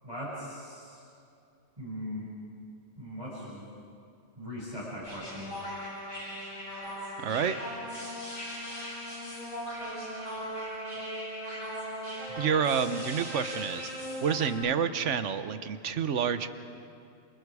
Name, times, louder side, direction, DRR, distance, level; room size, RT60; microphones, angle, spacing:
voice 1, 0.0-1.0 1.8-2.3 3.0-3.7 4.4-5.6 12.3-12.5, equal, 25° right, -10 dB, 6.3 m, -40 dB
sound 1, 5.0-14.5, equal, 45° left, 7.2 m, -38 dB
voice 2, 7.2-7.6 12.4-13.9 14.2-16.5, right 7 dB, 75° right, 11 dB, 1.3 m, -28 dB
28.0 x 27.5 x 4.9 m, 2.5 s
omnidirectional pair, 1.3 m